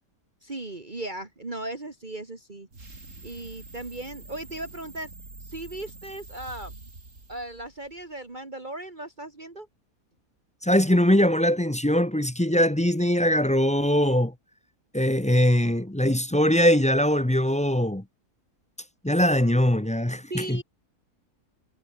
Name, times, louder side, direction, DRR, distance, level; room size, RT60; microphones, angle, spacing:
voice 1, 0.4-2.7 3.2-5.1 5.4-6.9 7.3-9.7 20.3-20.6, right 2 dB, 30° right, 2.5 m, -37 dB
sound 1, 2.7-8.1, right 3 dB, 60° right, 4.5 m, -46 dB
voice 2, 10.6-14.3 14.9-18.0 19.0-20.6, equal, 5° left, 0.7 m, -21 dB
omnidirectional pair, 1.5 m